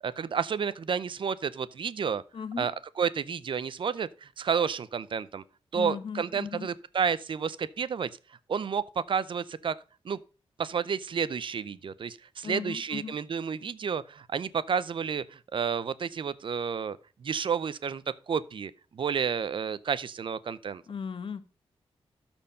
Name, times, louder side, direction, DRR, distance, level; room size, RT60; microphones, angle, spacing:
voice 1, 0.0-2.2 2.6-5.4 5.7-9.8 10.0-10.2 10.6-20.8, right 6 dB, 55° right, 0.6 m, -31 dB
voice 2, 2.3-2.7 5.7-6.7 12.4-13.1 20.9-21.4, left 6 dB, 55° left, 1.0 m, -37 dB
13.0 x 4.5 x 5.2 m
cardioid pair, 80°, 10 cm